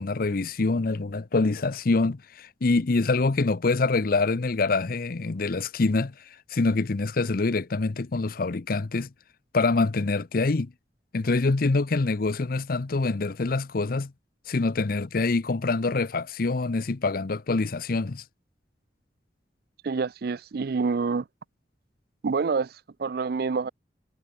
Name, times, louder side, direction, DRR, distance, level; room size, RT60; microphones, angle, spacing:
voice 1, 0.0-6.1 6.5-9.1 9.5-10.7 11.1-14.1 14.5-18.2, left 3 dB, 55° left, 0.7 m, -25 dB
voice 2, 19.8-21.3 22.2-23.7, right 4 dB, 55° right, 0.4 m, -27 dB
head